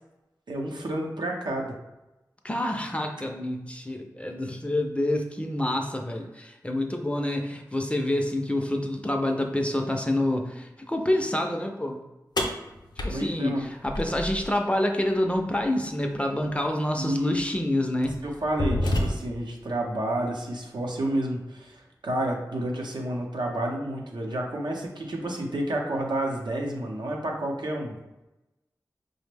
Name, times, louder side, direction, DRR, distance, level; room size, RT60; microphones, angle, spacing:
voice 1, 0.5-1.7 13.1-13.7 17.0-17.4 18.2-27.9, right 1 dB, 85° right, 0 dB, 0.6 m, -30 dB
voice 2, 2.4-12.0 13.0-18.2, left 1 dB, 15° left, 3 dB, 0.4 m, -27 dB
sound 1, 12.4-14.5 16.4-16.5 17.3-17.5 18.0-19.5, left 1 dB, 70° left, 0.6 m, -29 dB
5.0 x 2.0 x 3.3 m, 1.0 s
wide cardioid pair, 75°, 7 cm